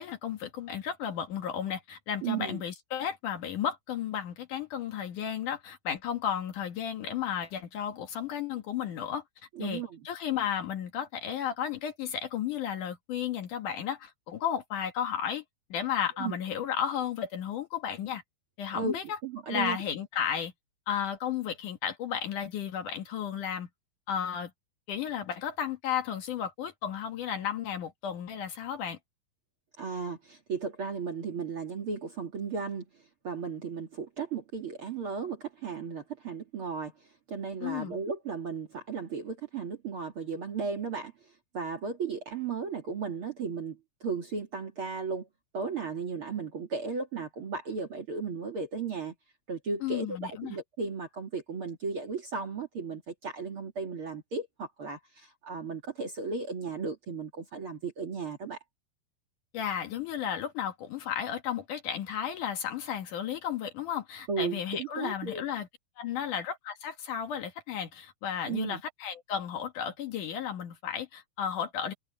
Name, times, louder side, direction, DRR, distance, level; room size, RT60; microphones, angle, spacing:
voice 1, 0.0-9.2 9.6-15.4 15.7-18.2 18.6-19.2 19.5-20.5 20.9-23.7 24.1-24.5 24.9-29.0 37.6-38.0 49.8-50.6 59.5-65.7 66.0-71.9, left 9 dB, 60° left, 2.8 m, -33 dB
voice 2, 2.2-2.6 9.5-10.0 16.2-16.4 18.7-19.8 29.8-32.9 33.2-36.9 37.3-41.1 41.5-45.3 45.5-49.1 49.5-58.6 64.3-65.4 68.4-68.8, right 5 dB, 40° right, 2.3 m, -35 dB
omnidirectional pair, 4.4 m